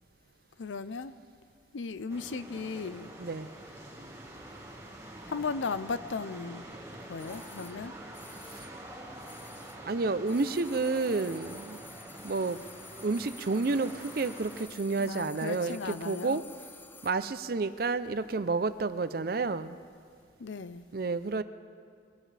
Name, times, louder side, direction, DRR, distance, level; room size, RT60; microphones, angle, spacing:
voice 1, 0.6-1.1 1.7-3.1 5.3-6.7 7.0-8.0 15.0-16.4 20.4-20.9, left 4 dB, 80° left, 0.6 m, -36 dB
sound 1, 2.1-14.7, right 1 dB, 15° right, 1.6 m, -46 dB
voice 2, 3.2-3.5 8.5-8.7 9.8-11.8 12.2-12.6 13.0-16.4 17.0-19.8 20.9-21.4, right 3 dB, 50° right, 0.5 m, -30 dB
sound 2, 7.2-9.9 10.2-17.2 17.5-17.6, left 4 dB, 10° left, 0.4 m, -51 dB
22.0 x 17.5 x 3.4 m
head